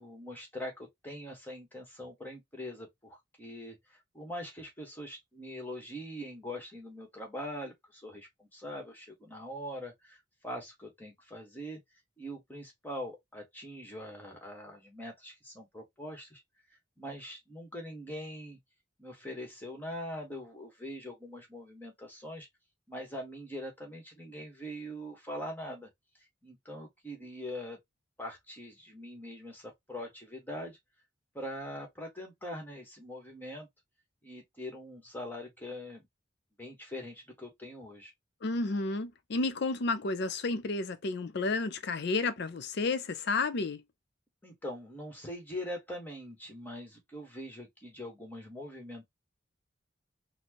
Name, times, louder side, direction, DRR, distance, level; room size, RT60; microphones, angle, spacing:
voice 1, 0.0-11.8 12.2-16.4 17.0-18.6 19.0-22.5 22.9-25.9 26.4-27.8 28.2-30.8 31.3-33.7 34.2-36.1 36.6-38.1 44.4-49.1, equal, 10° left, 1.3 m, -42 dB
voice 2, 38.4-43.8, left 3 dB, 55° left, 0.5 m, -31 dB
4.3 x 2.1 x 2.9 m
head